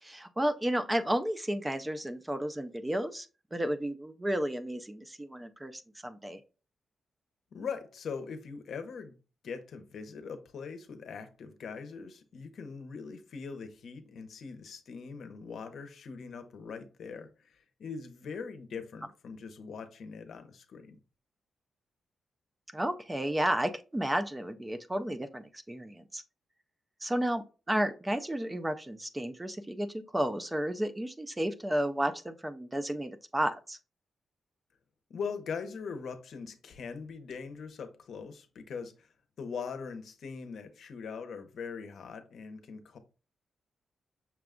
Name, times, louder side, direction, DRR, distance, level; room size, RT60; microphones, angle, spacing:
voice 1, 0.0-6.4 22.7-26.2 27.0-33.8, right 1 dB, 10° right, 0.4 m, -32 dB
voice 2, 7.5-9.2 9.4-21.0 35.1-39.1 39.4-43.0, left 5 dB, 65° left, 0.7 m, -41 dB
5.9 x 2.2 x 3.6 m
wide cardioid pair, 140°, 0 cm